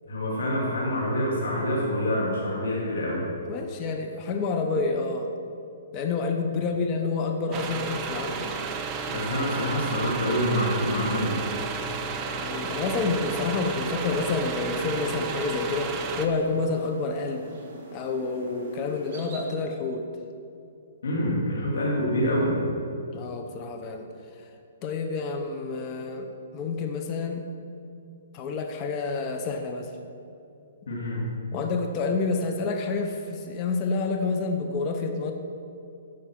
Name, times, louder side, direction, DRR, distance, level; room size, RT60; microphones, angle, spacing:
voice 1, 0.1-3.2 9.1-11.4 21.0-22.6 30.9-31.3, equal, 85° left, -5 dB, 2.6 m, -26 dB
voice 2, 3.5-5.3 5.9-8.6 12.4-17.5 17.9-20.1 23.1-24.1 24.8-26.3 26.5-27.5 28.3-29.9 31.5-35.3, left 4 dB, 25° left, 5 dB, 0.7 m, -28 dB
sound 1, 7.5-16.3, right 5 dB, 20° right, 0.6 m, -32 dB
sound 2, 12.7-19.5, right 2 dB, 35° right, 2.6 m, -45 dB
10.0 x 6.3 x 6.2 m, 2.7 s
hypercardioid pair, 160°, 0 cm